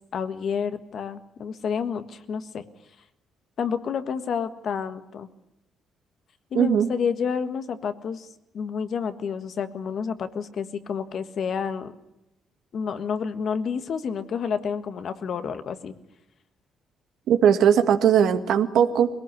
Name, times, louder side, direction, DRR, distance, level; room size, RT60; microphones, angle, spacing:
voice 1, 0.1-2.6 3.6-5.3 6.5-8.3 8.5-11.9 12.7-15.9, left 6 dB, 60° left, 10 dB, 1.6 m, -29 dB
voice 2, 6.5-6.9 17.3-19.1, right 8 dB, 75° right, 8 dB, 1.7 m, -19 dB
22.0 x 18.5 x 9.7 m, 0.91 s
cardioid pair, 90°, 0 cm